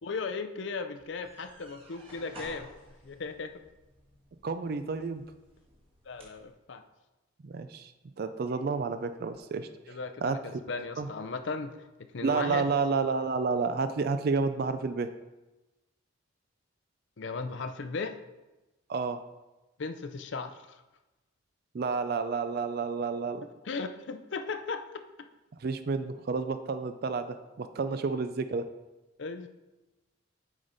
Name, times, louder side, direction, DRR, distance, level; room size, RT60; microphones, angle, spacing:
voice 1, 0.0-2.7 3.0-3.5 6.1-6.8 9.9-11.9 12.1-12.7 17.2-18.2 19.8-20.8 23.6-25.0 29.2-29.5, left 4 dB, 65° left, 9 dB, 0.5 m, -36 dB
sound 1, 1.0-6.5, right 1 dB, 30° right, 1.6 m, -53 dB
voice 2, 4.4-5.2 7.4-7.9 8.2-10.6 11.0-11.1 12.2-15.1 18.9-19.2 21.7-23.4 25.6-28.7, right 4 dB, 50° right, 10 dB, 0.4 m, -30 dB
7.2 x 5.1 x 4.0 m, 1.1 s
head